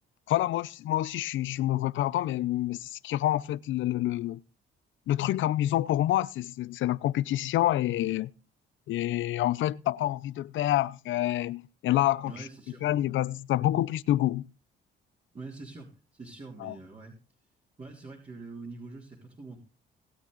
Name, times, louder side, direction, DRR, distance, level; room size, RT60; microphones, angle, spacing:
voice 1, 0.3-4.4 5.1-8.3 8.9-12.3 12.8-14.5 16.6-16.7, left 14 dB, 75° left, 0.6 m, -27 dB
voice 2, 12.3-12.8 15.3-17.2 17.8-19.6, right 3 dB, 30° right, 3.4 m, -44 dB
18.5 x 8.8 x 4.0 m
cardioid pair, 90°, 20 cm